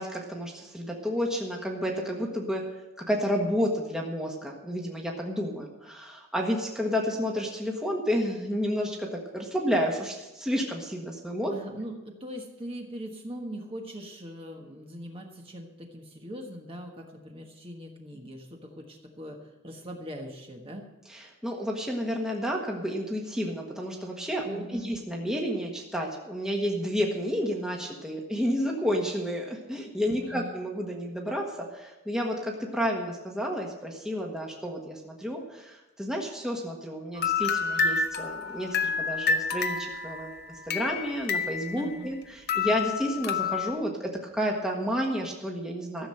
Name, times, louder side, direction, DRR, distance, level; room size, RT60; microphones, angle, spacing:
voice 1, 0.0-2.6 3.1-11.5 21.1-46.1, equal, 5° right, 0 dB, 1.4 m, -31 dB
voice 2, 11.5-20.9 24.4-24.9 30.2-30.6 41.7-42.1, equal, 25° right, 1 dB, 1.4 m, -41 dB
sound 1, 37.2-42.2 42.5-43.8, left 5 dB, 50° left, 0.8 m, -29 dB
14.5 x 7.4 x 7.7 m, 1.0 s
head